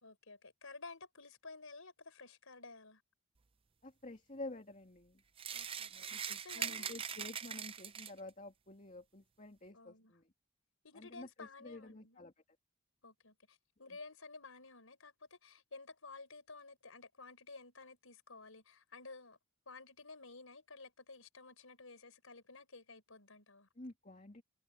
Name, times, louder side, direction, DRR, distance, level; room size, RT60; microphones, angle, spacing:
voice 1, 0.0-3.0 5.5-6.9 9.7-10.1 10.8-12.2 13.0-19.4 19.7-23.7, left 3 dB, 85° left, 4.3 m, -53 dB
voice 2, 3.8-5.2 5.9-10.3 10.9-12.3 13.8-14.0 23.8-24.4, left 2 dB, 35° left, 2.4 m, -50 dB
sound 1, 5.4-8.3, right 8 dB, 25° right, 0.5 m, -42 dB
head